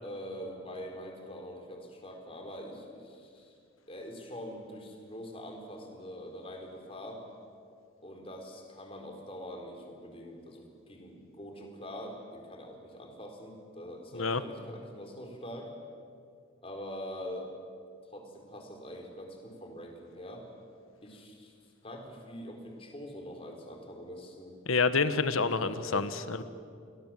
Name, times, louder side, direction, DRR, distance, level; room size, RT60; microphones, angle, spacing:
voice 1, 0.0-3.5 3.9-7.2 8.0-15.7 16.6-17.5 18.1-20.5 21.0-21.5 21.8-24.6 25.6-26.1, equal, 25° left, 2 dB, 4.2 m, -44 dB
voice 2, 24.7-26.4, left 4 dB, 85° left, 12 dB, 1.4 m, -28 dB
29.5 x 22.0 x 7.6 m, 2.3 s
head